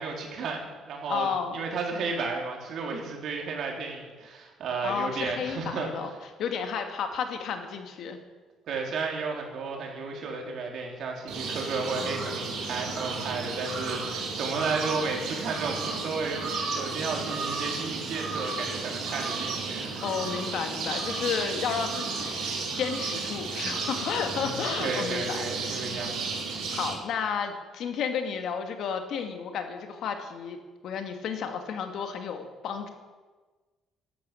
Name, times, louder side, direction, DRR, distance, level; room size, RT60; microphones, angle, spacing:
voice 1, 0.0-6.1 8.7-20.0 24.3-26.2, right 4 dB, 60° right, 0 dB, 4.1 m, -33 dB
voice 2, 1.1-1.6 4.8-6.1 6.4-8.2 20.0-25.8 26.7-32.9, left 6 dB, 65° left, 6 dB, 2.1 m, -32 dB
sound 1, 11.3-26.9, right 4 dB, 80° right, 5.0 m, -33 dB
12.5 x 11.5 x 8.5 m, 1.3 s
cardioid pair, 125°, 0 cm